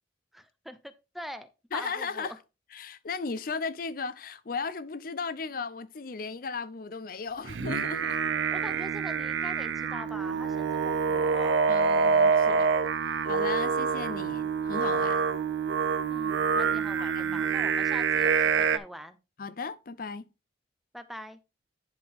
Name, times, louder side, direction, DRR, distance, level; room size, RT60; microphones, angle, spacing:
voice 1, 0.3-2.4 8.5-11.7 16.1-19.2 20.9-21.4, equal, ahead, 0.6 m, -43 dB
voice 2, 1.7-2.3 2.7-8.2 11.7-12.7 13.0-15.3 17.0-17.4 19.4-20.2, left 4 dB, 50° left, 0.6 m, -36 dB
Singing, 7.4-18.8, right 5 dB, 85° right, 0.6 m, -26 dB
10.5 x 4.5 x 3.5 m
head